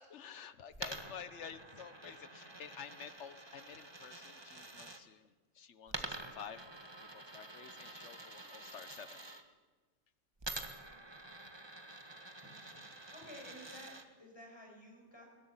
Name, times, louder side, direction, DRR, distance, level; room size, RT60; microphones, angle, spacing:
voice 1, 0.0-9.2, left 7 dB, 65° left, 13 dB, 1.3 m, -51 dB
Coin (dropping), 0.7-5.0 5.9-9.4 10.4-14.0, right 2 dB, 20° right, 1.5 m, -48 dB
voice 2, 12.4-12.8 13.1-15.3, equal, 20° left, 0 dB, 6.0 m, -53 dB
21.0 x 17.0 x 8.9 m, 1.3 s
omnidirectional pair, 1.3 m